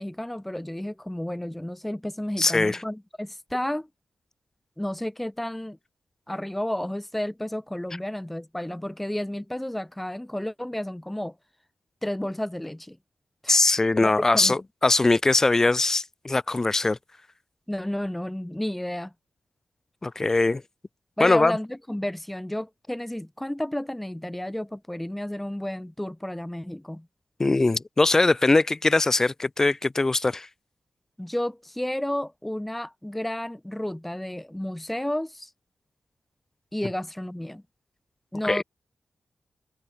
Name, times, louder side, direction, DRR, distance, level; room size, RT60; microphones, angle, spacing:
voice 1, 0.0-3.9 4.8-5.8 6.3-11.4 12.0-13.0 13.4-13.8 14.0-14.6 17.7-19.1 21.2-27.1 31.2-35.5 36.7-37.6 38.3-38.6, left 1 dB, 5° left, 3.9 m, -32 dB
voice 2, 2.4-2.8 13.5-17.0 20.0-20.6 21.2-21.5 27.4-30.5 38.4-38.6, left 2 dB, 25° left, 5.6 m, -21 dB
wide cardioid pair, 150°, 2 cm